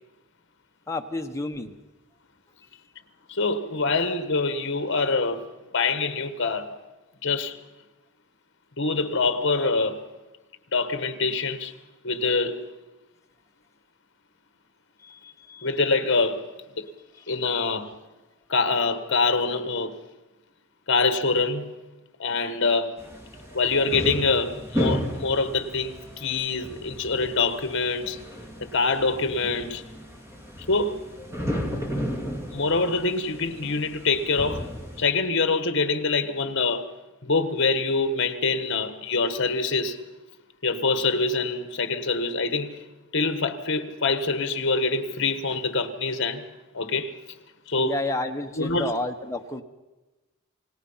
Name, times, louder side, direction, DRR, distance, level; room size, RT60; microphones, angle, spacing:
voice 1, 0.9-1.7 15.0-15.7 17.4-17.5 47.8-49.6, left 2 dB, 15° left, 1.2 m, -31 dB
voice 2, 3.3-5.5 5.7-6.7 7.2-7.6 8.8-10.0 10.7-11.7 12.0-12.6 15.6-16.5 16.8-16.9 17.3-17.9 18.5-19.9 20.9-21.8 22.2-23.0 23.5-28.2 28.6-29.8 30.7-31.0 32.5-34.6 35.0-36.9 37.2-40.0 40.6-42.8 43.1-46.5 46.7-47.1 47.7-48.0 48.6-48.9, left 3 dB, 55° left, 1.5 m, -25 dB
sound 1, 23.0-35.0, equal, 10° right, 2.6 m, -34 dB
28.5 x 18.5 x 5.8 m
head